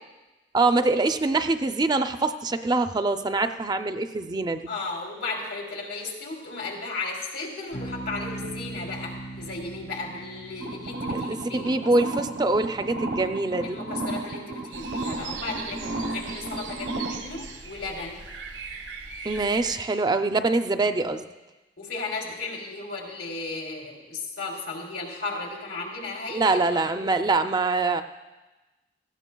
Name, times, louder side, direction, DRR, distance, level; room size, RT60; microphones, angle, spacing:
voice 1, 0.5-4.7 11.1-13.8 19.2-21.2 26.3-28.0, right 3 dB, 25° right, 8 dB, 0.4 m, -24 dB
voice 2, 4.7-11.8 13.6-18.2 21.8-26.6 26.9-27.2, left 3 dB, 90° left, -1 dB, 3.1 m, -35 dB
sound 1, 7.7-18.3, right 2 dB, 65° left, 1.0 m, -43 dB
sound 2, 10.6-17.2, right 2 dB, 70° right, 0.8 m, -33 dB
sound 3, 14.7-19.8, right 5 dB, 85° right, 1.3 m, -40 dB
18.0 x 15.0 x 2.3 m, 1.1 s
head